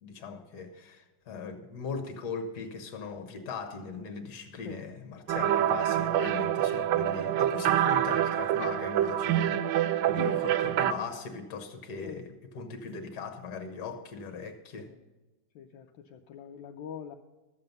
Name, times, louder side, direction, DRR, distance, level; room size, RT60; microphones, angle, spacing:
voice 1, 0.0-14.9, left 5 dB, 55° left, 6 dB, 1.7 m, -39 dB
sound 1, 5.3-10.9, right 11 dB, 70° right, 1.2 m, -26 dB
voice 2, 15.5-17.2, left 7 dB, 75° left, 3 dB, 1.4 m, -42 dB
13.5 x 7.6 x 5.3 m, 1.2 s
omnidirectional pair, 2.2 m